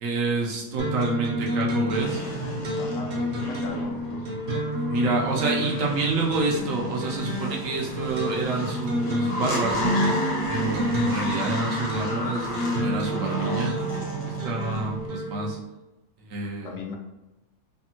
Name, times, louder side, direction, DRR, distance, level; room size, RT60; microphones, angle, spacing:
voice 1, 0.0-2.2 4.8-10.0 10.5-13.8 14.3-15.6 16.2-16.7, right 3 dB, 75° right, -2 dB, 1.1 m, -28 dB
sound 1, 0.8-15.6, equal, 55° right, 0.7 m, -30 dB
sound 2, 1.9-15.1, equal, 40° left, 0.6 m, -32 dB
voice 2, 2.8-4.4 16.6-16.9, left 3 dB, 75° left, 2 dB, 1.0 m, -38 dB
3.4 x 2.1 x 2.8 m, 1.0 s
omnidirectional pair, 1.4 m